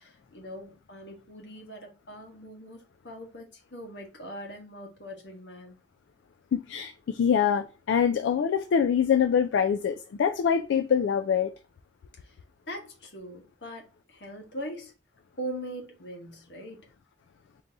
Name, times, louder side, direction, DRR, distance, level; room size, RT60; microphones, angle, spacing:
voice 1, 0.0-5.8 12.7-14.9 15.4-16.8, equal, 70° left, 1.2 m, -41 dB
voice 2, 6.5-11.5, left 7 dB, 85° left, 0.3 m, -24 dB
4.0 x 2.7 x 3.4 m
head